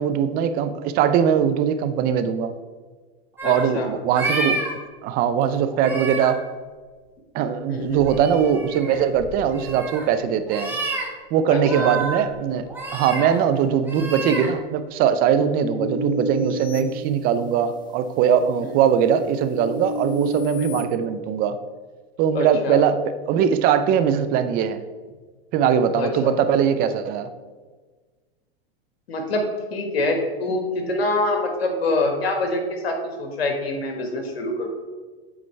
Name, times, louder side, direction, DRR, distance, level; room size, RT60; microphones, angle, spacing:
voice 1, 0.0-2.5 3.4-4.6 5.0-6.4 7.3-10.7 11.3-12.7 12.9-21.6 22.2-24.8 25.5-27.3, right 8 dB, 30° right, 10 dB, 0.4 m, -21 dB
voice 2, 3.4-3.9 7.7-8.0 11.5-11.9 15.4-15.8 18.6-18.7 22.3-22.8 26.0-26.3 29.1-29.4 29.7-34.7, left 2 dB, 85° left, 3 dB, 1.4 m, -25 dB
sound 1, 3.4-3.6 4.1-4.7 5.7-6.3 7.9-10.1 10.5-11.0 11.4-12.2 12.7-13.4 13.8-14.5, right 3 dB, 5° right, 1.3 m, -29 dB
sound 2, 15.8-17.8 18.3-20.8, equal, 15° left, 0.7 m, -31 dB
7.8 x 4.5 x 3.2 m, 1.4 s
hypercardioid pair, 120°, 30 cm